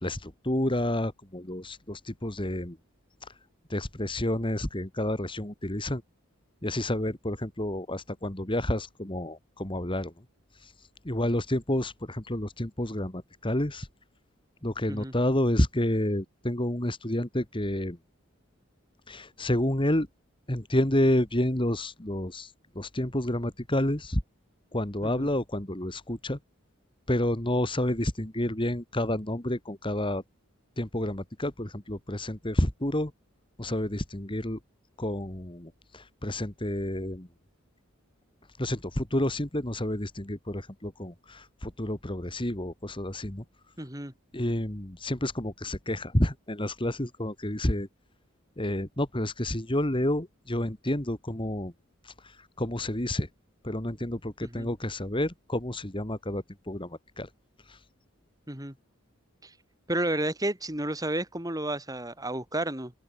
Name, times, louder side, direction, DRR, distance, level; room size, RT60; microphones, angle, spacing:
voice 1, 0.0-2.8 3.7-6.0 6.6-10.1 10.6-10.7 11.0-13.9 14.6-18.0 19.1-20.1 20.5-24.2 24.7-26.4 27.1-30.2 30.8-33.1 33.6-34.6 35.0-37.3 38.6-43.4 44.3-47.9 48.6-51.7 52.0-53.3 53.6-57.3 57.7-57.8, left 1 dB, 25° left, 2.6 m, -29 dB
voice 2, 43.8-44.1 54.4-54.7 58.5-58.7 59.4-59.5 59.9-62.9, right 1 dB, 15° right, 4.6 m, -31 dB
open air
head